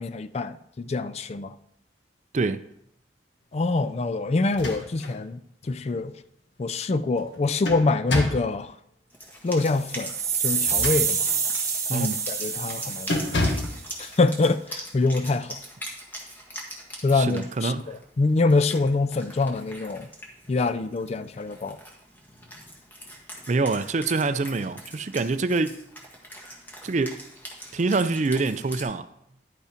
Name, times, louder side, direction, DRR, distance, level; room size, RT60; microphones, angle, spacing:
voice 1, 0.0-1.5 3.5-5.4 5.7-6.1 6.6-8.7 9.4-10.1 10.4-11.3 11.9-13.2 14.0-15.6 17.0-20.1 20.5-21.8, left 3 dB, 35° left, 0.4 m, -25 dB
sound 1, 4.4-5.2 5.6-5.7 7.2-8.5 10.5-11.5 11.9-12.2 12.5-12.7 13.1-13.8, left 1 dB, 80° left, 1.4 m, -29 dB
Wind instrument woodwind instrument, 9.1-28.8, equal, 10° left, 1.6 m, -42 dB
sound 2, 9.7-13.9, right 6 dB, 20° right, 1.0 m, -27 dB
voice 2, 11.9-12.2 17.1-17.9 23.5-25.8 26.8-27.2 27.7-29.1, right 3 dB, 40° right, 0.4 m, -25 dB
10.5 x 5.4 x 5.0 m
head